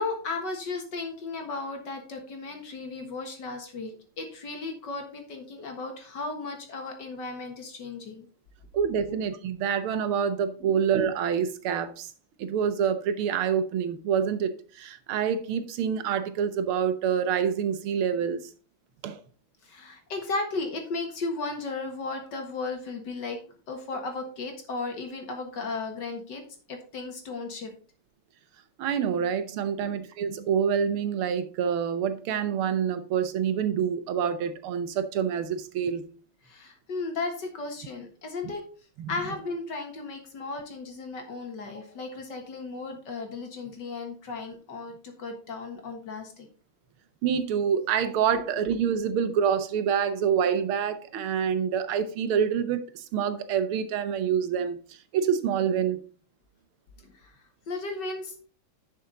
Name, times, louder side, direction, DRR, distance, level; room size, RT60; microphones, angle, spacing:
voice 1, 0.0-8.3 9.0-9.2 10.6-10.7 19.6-23.4 23.7-26.4 26.7-27.7 29.8-30.0 36.4-38.6 39.1-46.5 48.3-48.4 57.0-57.4 57.7-58.4, left 3 dB, 60° left, 2.1 m, -35 dB
voice 2, 8.7-12.1 12.4-14.5 14.8-18.4 19.0-19.2 28.8-36.0 39.0-39.1 47.2-54.8 55.1-56.0, right 7 dB, 90° right, 1.8 m, -26 dB
10.5 x 5.9 x 3.8 m
omnidirectional pair, 2.3 m